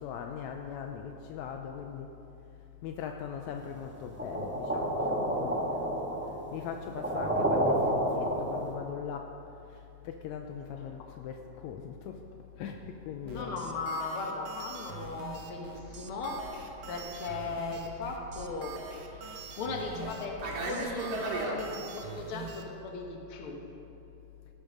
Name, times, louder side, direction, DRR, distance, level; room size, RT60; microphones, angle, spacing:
voice 1, 0.0-2.1 2.8-5.9 6.5-7.8 8.2-9.3 10.1-12.2 12.6-13.6, left 7 dB, 80° left, 4 dB, 1.9 m, -40 dB
sound 1, 4.2-8.7, right 1 dB, 5° right, 0.8 m, -30 dB
voice 2, 13.3-18.8 19.1-23.7, left 3 dB, 55° left, 1 dB, 2.0 m, -38 dB
sound 2, 13.3-22.6, right 6 dB, 65° right, 1.3 m, -44 dB
Fixed-wing aircraft airplane, 15.1-21.6, right 3 dB, 80° right, 3.1 m, -40 dB
17.5 x 8.8 x 5.3 m, 2.7 s
omnidirectional pair, 3.3 m